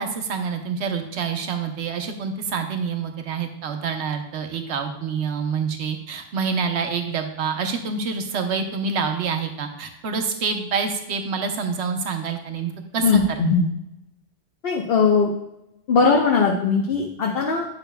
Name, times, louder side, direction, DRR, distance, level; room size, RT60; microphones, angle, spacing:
voice 1, 0.0-13.4, right 5 dB, 70° right, 5 dB, 1.0 m, -27 dB
voice 2, 13.0-13.7 14.6-15.3 15.9-17.7, left 4 dB, 55° left, -1 dB, 0.9 m, -19 dB
9.1 x 6.1 x 2.2 m, 0.86 s
omnidirectional pair, 1.2 m